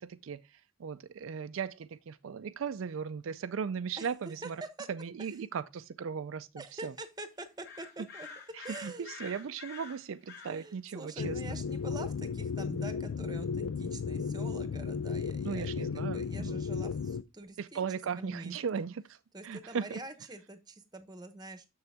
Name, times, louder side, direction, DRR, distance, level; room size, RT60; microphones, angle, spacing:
voice 1, 0.0-4.6 4.9-6.9 8.5-11.6 15.4-16.6 17.6-19.2 19.4-20.0, right 6 dB, 75° right, 0.4 m, -37 dB
voice 2, 4.4-4.9 6.6-8.3 8.6-9.1 10.5-17.8 18.2-18.8 19.3-21.7, right 2 dB, 20° right, 0.9 m, -45 dB
sound 1, 7.6-10.6, left 5 dB, 50° left, 2.1 m, -47 dB
sound 2, 11.2-17.2, left 5 dB, 85° left, 0.4 m, -34 dB
7.0 x 6.7 x 3.4 m
head